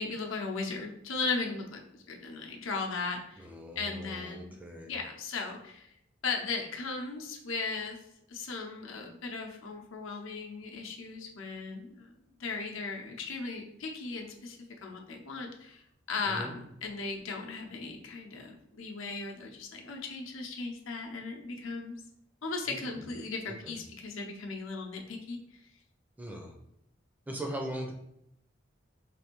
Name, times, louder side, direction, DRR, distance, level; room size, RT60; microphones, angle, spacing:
voice 1, 0.0-3.5 3.8-4.6 4.9-5.9 6.2-8.0 8.3-15.8 16.1-22.0 22.4-25.4, left 4 dB, 80° left, 1 dB, 0.7 m, -37 dB
voice 2, 3.4-4.9 16.3-16.5 22.7-23.1 23.5-23.8 26.2-26.5 27.3-27.9, right 1 dB, 10° right, 2 dB, 0.4 m, -40 dB
3.4 x 2.6 x 4.4 m, 0.81 s
head